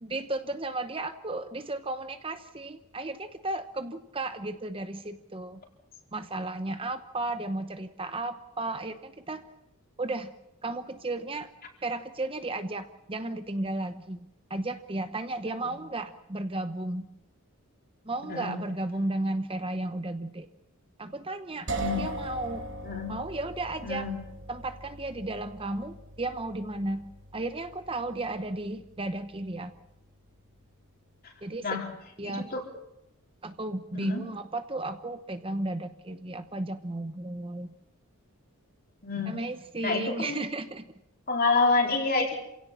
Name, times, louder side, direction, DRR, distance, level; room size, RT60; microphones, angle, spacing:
voice 1, 0.0-5.6 6.1-9.4 10.0-10.3 10.6-11.5 11.8-17.1 18.0-20.5 21.0-22.7 23.1-24.1 24.5-29.7 31.4-31.8 32.2-32.5 33.4-37.7 39.3-40.9, right 2 dB, 25° right, 9 dB, 0.9 m, -34 dB
voice 2, 18.2-18.6 21.8-22.1 22.8-23.2 23.8-24.2 31.2-31.3 31.6-31.9 32.2-32.6 33.9-34.3 39.0-39.4 39.8-40.4 41.3-42.4, left 3 dB, 45° left, 2 dB, 4.3 m, -28 dB
sound 1, 21.7-31.4, right 2 dB, 55° right, 2.9 m, -41 dB
27.5 x 17.0 x 7.4 m, 0.83 s
head